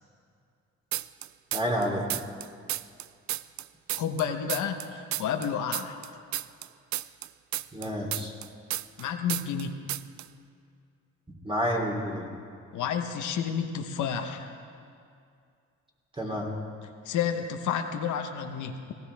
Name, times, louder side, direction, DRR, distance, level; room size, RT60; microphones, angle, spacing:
sound 1, 0.9-1.8 2.1-4.9 5.1-9.0 9.3-9.6 9.9-10.3, right 14 dB, 75° right, 0.4 m, -32 dB
voice 1, 1.5-2.1 7.7-8.3 11.4-12.3 16.2-16.5, equal, 20° right, -1 dB, 3.2 m, -29 dB
voice 2, 4.0-6.0 9.0-9.7 12.7-14.5 17.0-18.9, left 7 dB, 85° left, 5 dB, 1.0 m, -30 dB
18.5 x 17.0 x 3.4 m, 2.3 s
cardioid pair, 80°, 29 cm